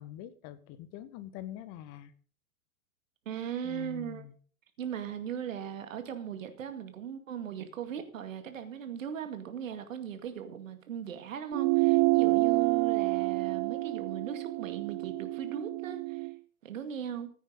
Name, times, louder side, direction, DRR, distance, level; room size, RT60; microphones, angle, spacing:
voice 1, 0.0-2.1 3.6-4.4, left 12 dB, 35° left, 14 dB, 1.5 m, -44 dB
voice 2, 3.3-4.2 4.8-16.3 16.6-17.3, right 8 dB, 65° right, 8 dB, 2.2 m, -38 dB
sound 1, 11.5-16.3, right 27 dB, 35° right, 0.7 m, -28 dB
15.5 x 9.4 x 4.0 m, 0.44 s
figure-of-eight pair, 100°, 42 cm